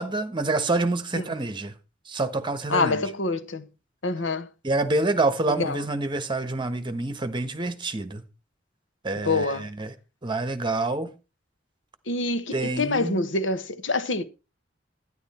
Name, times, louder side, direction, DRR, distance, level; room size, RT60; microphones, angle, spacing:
voice 1, 0.0-1.7 2.1-3.0 4.6-8.2 9.0-9.9 10.2-11.1 12.5-13.2, right 2 dB, 25° right, 1.3 m, -27 dB
voice 2, 2.7-3.7 4.0-4.5 5.6-5.8 9.2-9.7 12.1-14.2, left 3 dB, 90° left, 1.2 m, -26 dB
11.5 x 10.5 x 4.3 m
head